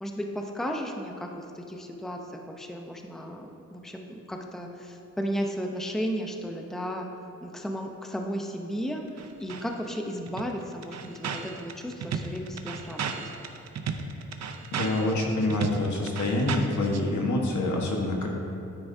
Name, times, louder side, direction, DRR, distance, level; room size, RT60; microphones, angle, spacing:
voice 1, 0.0-7.1 7.4-13.2, equal, ahead, 2 dB, 0.7 m, -34 dB
sound 1, 9.2-9.6 10.0-10.1 10.3-17.0, right 6 dB, 60° right, 0.7 m, -34 dB
voice 2, 14.7-18.3, left 2 dB, 70° left, 0 dB, 1.4 m, -26 dB
9.4 x 9.3 x 2.7 m, 2.7 s
cardioid pair, 85°, 30 cm